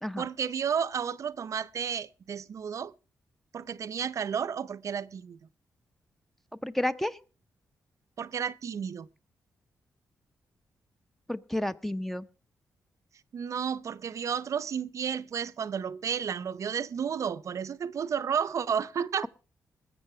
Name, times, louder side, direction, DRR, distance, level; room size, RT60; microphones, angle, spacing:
voice 1, 0.2-2.9 3.5-5.4 8.2-9.1 13.3-19.3, right 7 dB, 60° right, 0.6 m, -32 dB
voice 2, 6.6-7.2 11.3-12.3, left 1 dB, 5° left, 0.7 m, -31 dB
20.5 x 7.5 x 5.7 m
cardioid pair, 95°, 6 cm